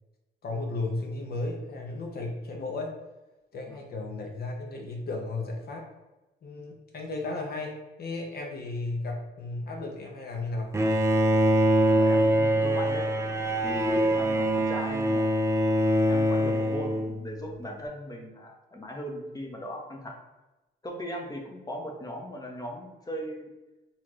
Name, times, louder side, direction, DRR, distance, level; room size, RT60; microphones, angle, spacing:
voice 1, 0.4-2.9 3.5-5.9 6.4-10.7, left 2 dB, 50° left, 0 dB, 0.8 m, -34 dB
Bowed string instrument, 10.7-17.5, equal, 15° right, 0.4 m, -24 dB
voice 2, 11.8-13.1 13.6-15.5 16.1-20.2 20.8-23.5, equal, 20° left, 1 dB, 0.8 m, -38 dB
4.2 x 2.5 x 3.1 m, 1.0 s
cardioid pair, 90°, 20 cm